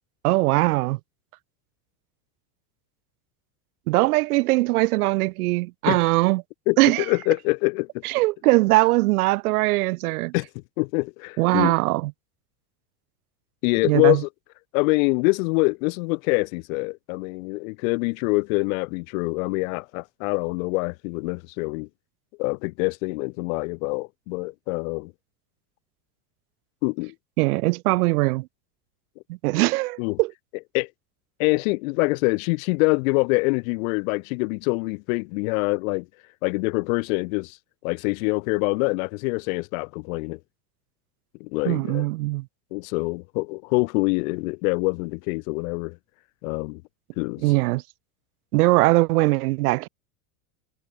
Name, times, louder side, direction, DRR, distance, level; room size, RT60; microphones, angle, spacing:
voice 1, 0.2-1.0 3.9-6.4 6.8-7.0 8.0-10.3 11.4-12.1 13.8-14.2 27.4-28.5 29.3-30.3 41.6-42.4 47.4-47.8 48.5-49.9, right 21 dB, 80° right, 1.6 m, -21 dB
voice 2, 6.7-8.0 10.3-10.5 10.8-11.7 13.6-14.3 14.7-21.9 22.4-25.1 26.8-27.1 30.0-30.2 30.7-30.9 31.4-36.1 36.4-37.6 37.8-40.4 41.4-42.1 42.7-46.0 46.4-46.8 47.2-47.4, left 29 dB, 65° left, 5.7 m, -25 dB
supercardioid pair, 155°, 44 cm